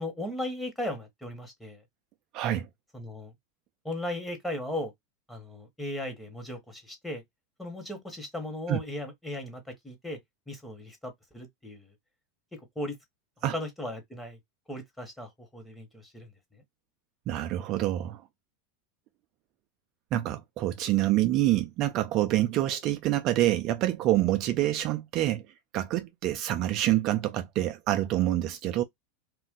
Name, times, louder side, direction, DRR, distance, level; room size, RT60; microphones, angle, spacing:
voice 1, 0.0-1.8 2.9-3.3 3.8-4.9 5.3-7.2 7.6-10.2 10.5-11.9 12.5-13.0 13.5-14.4 14.7-16.6, left 1 dB, 5° left, 1.2 m, -37 dB
voice 2, 2.3-2.7 8.7-8.8 13.4-13.6 17.3-18.2 20.1-25.4 25.7-28.8, right 14 dB, 45° right, 0.4 m, -26 dB
2.5 x 2.2 x 3.6 m
hypercardioid pair, 115°, 0 cm